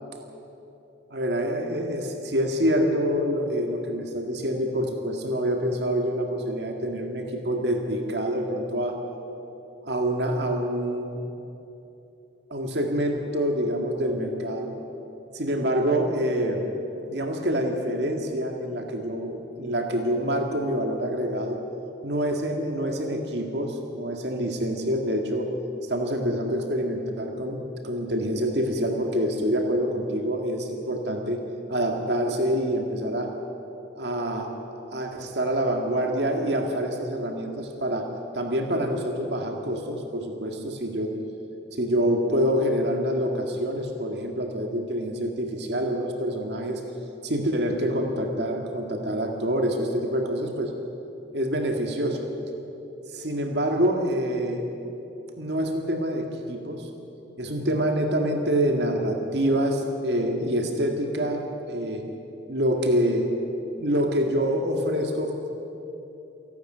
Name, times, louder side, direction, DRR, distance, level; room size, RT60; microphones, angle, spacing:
voice 1, 1.1-9.0 9.8-11.3 12.5-14.7 15.3-16.7 17.1-21.6 22.0-25.5 25.8-31.4 31.7-33.3 33.9-34.5 34.9-38.1 38.3-41.1 41.7-46.8 47.2-50.7 51.3-52.2 53.1-54.7 55.4-56.9 57.4-62.0 62.5-63.3 63.8-65.5, equal, 60° right, 3 dB, 2.1 m, -26 dB
28.5 x 12.0 x 9.1 m, 3.0 s
head